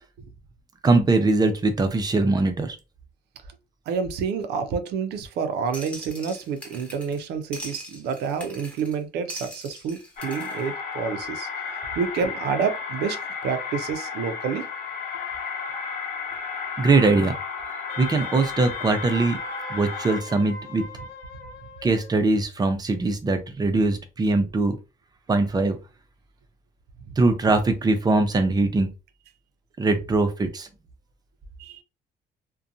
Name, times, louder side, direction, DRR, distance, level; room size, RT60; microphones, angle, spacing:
voice 1, 0.8-2.8 16.8-17.4 18.0-19.4 19.7-20.8 21.8-24.8 25.3-25.8 27.2-28.9 29.8-30.7, right 3 dB, 25° right, 0.5 m, -21 dB
voice 2, 3.9-11.5 12.0-14.7 31.6-31.8, right 6 dB, 75° right, 0.5 m, -28 dB
sound 1, 5.7-7.3 7.5-9.0 9.3-10.6, equal, 5° left, 1.0 m, -41 dB
sound 2, 10.2-20.2, left 5 dB, 55° left, 0.9 m, -33 dB
Wind instrument woodwind instrument, 17.9-22.1, left 3 dB, 85° left, 0.6 m, -40 dB
2.6 x 2.2 x 2.5 m
cardioid pair, 110°, 17 cm